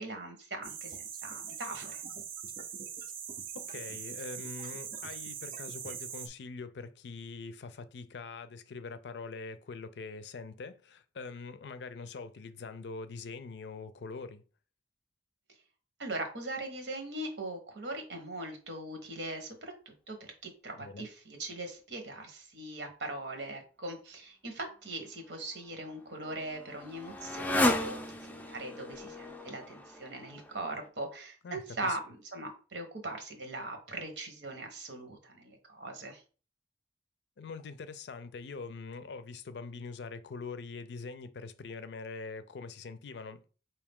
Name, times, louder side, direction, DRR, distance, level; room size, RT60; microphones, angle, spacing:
voice 1, 0.0-2.0 16.0-36.2, right 2 dB, 85° right, 1.2 m, -40 dB
sound 1, 0.6-6.3, right 7 dB, 50° right, 0.5 m, -42 dB
voice 2, 3.5-14.4 20.8-21.1 31.4-32.0 37.4-43.5, left 4 dB, 70° left, 0.4 m, -43 dB
Motorcycle, 25.5-30.9, left 1 dB, 10° left, 0.4 m, -34 dB
4.8 x 2.8 x 3.6 m
head